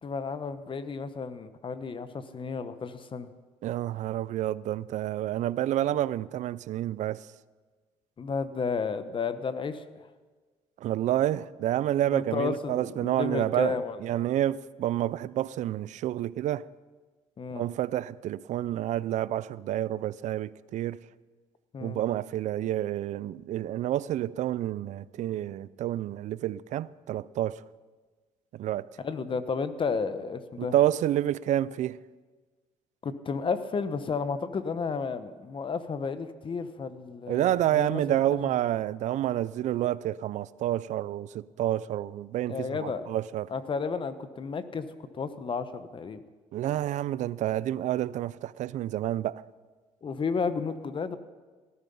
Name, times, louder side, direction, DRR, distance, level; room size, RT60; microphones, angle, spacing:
voice 1, 0.0-3.3 8.2-10.1 11.9-14.2 17.4-17.6 21.7-22.0 29.0-30.7 33.0-38.4 42.5-43.1 43.5-46.2 50.0-51.2, left 5 dB, 40° left, 1.2 m, -32 dB
voice 2, 3.6-7.3 10.8-16.7 17.5-21.0 21.8-27.6 28.5-28.9 30.6-32.0 37.3-43.5 46.5-49.4, right 13 dB, 70° right, 0.5 m, -29 dB
18.5 x 13.0 x 5.5 m
cardioid pair, 85°, 13 cm